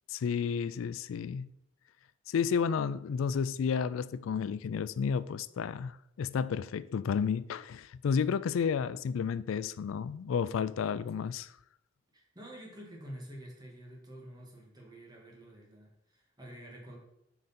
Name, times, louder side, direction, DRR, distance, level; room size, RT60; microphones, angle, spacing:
voice 1, 0.1-1.5 2.3-11.5, left 6 dB, 90° left, 0.3 m, -31 dB
voice 2, 12.1-17.0, equal, 20° right, 1.8 m, -48 dB
7.9 x 5.0 x 4.2 m
head